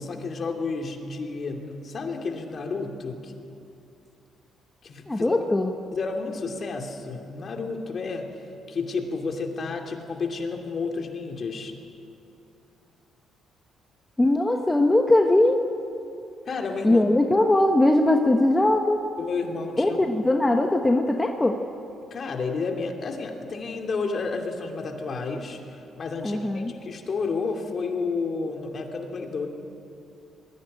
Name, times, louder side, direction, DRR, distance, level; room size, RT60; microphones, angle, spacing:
voice 1, 0.0-3.3 4.8-5.4 5.9-8.3 8.7-11.7 16.4-17.0 19.2-20.0 22.1-29.5, left 4 dB, 50° left, 3 dB, 2.7 m, -31 dB
voice 2, 5.1-5.7 14.2-15.7 16.8-19.1 19.8-21.6 26.2-26.7, left 1 dB, 15° left, 3 dB, 1.2 m, -20 dB
20.5 x 15.5 x 9.9 m, 2.7 s
cardioid pair, 90°, 0 cm